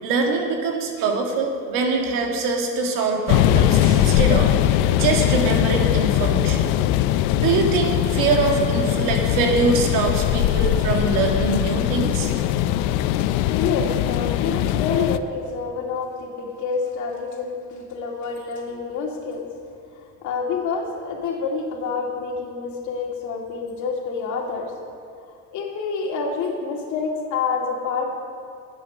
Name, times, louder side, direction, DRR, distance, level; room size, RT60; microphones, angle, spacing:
voice 1, 0.0-4.5 4.9-6.7 7.4-12.3, right 4 dB, 75° right, 2 dB, 2.0 m, -23 dB
sound 1, 3.3-15.2, left 12 dB, 80° left, 0.6 m, -21 dB
voice 2, 13.2-19.5 20.2-24.7 25.5-28.1, left 5 dB, 60° left, 0 dB, 2.3 m, -27 dB
11.5 x 8.6 x 6.6 m, 2.5 s
cardioid pair, 140°, 33 cm